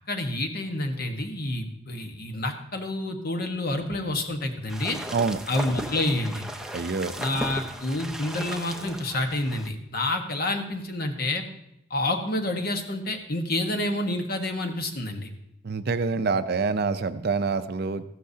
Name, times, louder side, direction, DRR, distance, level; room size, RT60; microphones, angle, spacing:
voice 1, 0.1-5.0 5.5-6.4 7.2-11.4 11.9-15.3, left 1 dB, 50° left, 5 dB, 1.3 m, -28 dB
sound 1, 4.7-9.7, right 1 dB, 5° right, 0.6 m, -36 dB
voice 2, 6.7-7.1 15.6-18.0, right 4 dB, 50° right, 11 dB, 0.5 m, -26 dB
14.5 x 12.0 x 2.8 m, 0.81 s
head